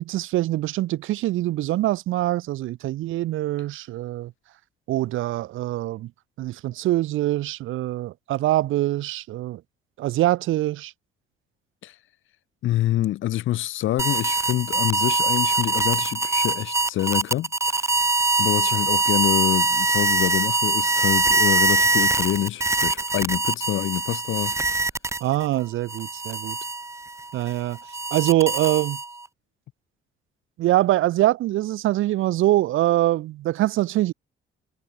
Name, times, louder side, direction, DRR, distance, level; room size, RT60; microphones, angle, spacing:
voice 1, 0.0-4.3 4.9-6.1 6.4-9.6 10.0-10.9 25.2-26.6 27.3-27.8 28.1-29.0 30.6-34.1, right 15 dB, 85° right, 2.2 m, -24 dB
voice 2, 12.6-17.9 18.4-24.5, left 14 dB, 80° left, 1.4 m, -26 dB
sound 1, 14.0-25.5 25.9-29.3, right 3 dB, 15° right, 0.7 m, -23 dB
cardioid pair, 90°, 20 cm